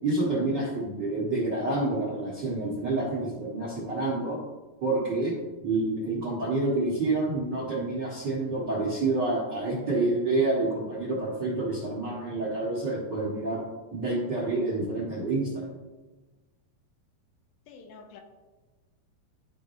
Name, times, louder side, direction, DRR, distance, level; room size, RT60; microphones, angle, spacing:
voice 1, 0.0-4.4 4.8-5.3 5.6-13.6 13.9-15.7, right 2 dB, 50° right, -6 dB, 1.3 m, -28 dB
voice 2, 17.7-18.2, left 5 dB, 85° left, 4 dB, 2.6 m, -48 dB
13.0 x 4.8 x 2.7 m, 1.2 s
omnidirectional pair, 4.2 m